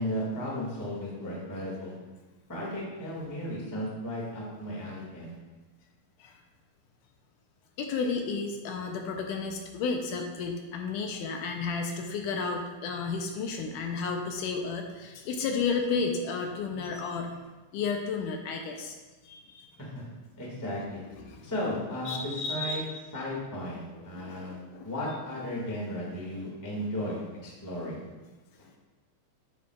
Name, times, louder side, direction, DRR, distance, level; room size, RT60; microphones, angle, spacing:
voice 1, 0.0-1.9 2.5-5.3 19.8-20.0 20.4-21.0 21.4-22.8 23.1-28.0, equal, 10° left, -5 dB, 0.9 m, -35 dB
voice 2, 7.8-17.4 17.7-18.9 19.2-19.7 21.2-21.4 22.1-23.0 24.1-24.9, left 4 dB, 80° left, 3 dB, 2.1 m, -32 dB
9.0 x 8.1 x 2.4 m, 1.2 s
omnidirectional pair, 3.9 m